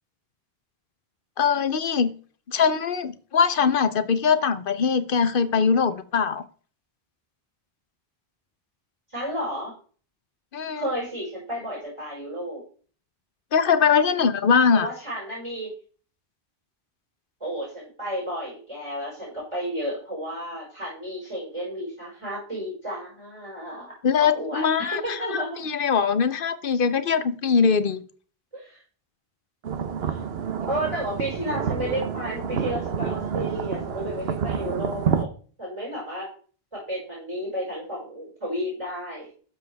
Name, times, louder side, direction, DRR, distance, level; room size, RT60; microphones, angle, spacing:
voice 1, 1.4-2.1 2.5-6.4 10.5-10.8 13.5-14.9 24.0-25.2 25.6-28.0, left 6 dB, 60° left, 13 dB, 0.9 m, -22 dB
voice 2, 9.1-9.7 10.7-12.6 14.7-15.7 17.4-23.9 24.2-25.6 28.5-28.8 30.1-30.2 30.7-35.3 35.6-36.3 36.7-39.3, equal, 30° right, -6 dB, 5.4 m, -32 dB
sound 1, 29.6-35.2, right 7 dB, 75° right, 1.1 m, -28 dB
12.5 x 7.2 x 3.4 m, 0.42 s
omnidirectional pair, 1.0 m